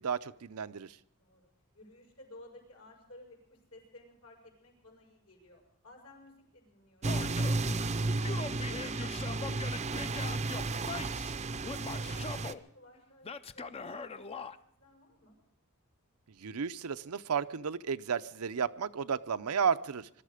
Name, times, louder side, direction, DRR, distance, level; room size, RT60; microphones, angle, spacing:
voice 1, 0.0-1.0 16.4-20.1, right 6 dB, 80° right, 13 dB, 0.6 m, -33 dB
voice 2, 1.2-7.2 7.4-8.3 8.6-10.2 11.5-15.4, left 1 dB, 75° left, 0 dB, 6.2 m, -57 dB
Male speech man speaking / Yell, 7.0-7.7 8.1-11.4 11.6-12.6 13.2-14.6, left 4 dB, 25° left, 0.5 m, -42 dB
sound 1, 7.0-12.5, right 3 dB, 30° right, 0.5 m, -33 dB
22.0 x 12.5 x 5.0 m, 0.71 s
head